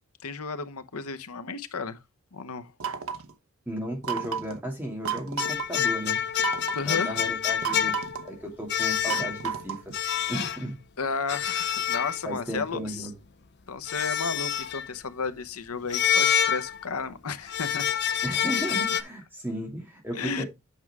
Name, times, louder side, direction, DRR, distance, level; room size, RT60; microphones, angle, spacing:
voice 1, 0.2-2.0 2.3-2.7 6.7-7.3 11.0-13.1 13.7-17.9 20.1-20.4, left 4 dB, 85° left, 0.9 m, -33 dB
sound 1, 2.8-3.3 4.0-4.6 5.0-5.7 6.4-6.9 7.6-8.3 9.1-9.9, right 7 dB, 75° right, 0.9 m, -32 dB
voice 2, 3.7-6.2 6.8-7.9 8.2-9.9 10.3-10.8 12.2-13.1 18.2-20.5, equal, 10° right, 2.4 m, -34 dB
sound 2, 5.4-8.3 8.7-9.5 9.9-10.6 11.3-12.5 13.9-14.9 15.9-17.1 17.5-19.0, left 9 dB, 50° left, 0.7 m, -27 dB
8.5 x 6.0 x 3.4 m
head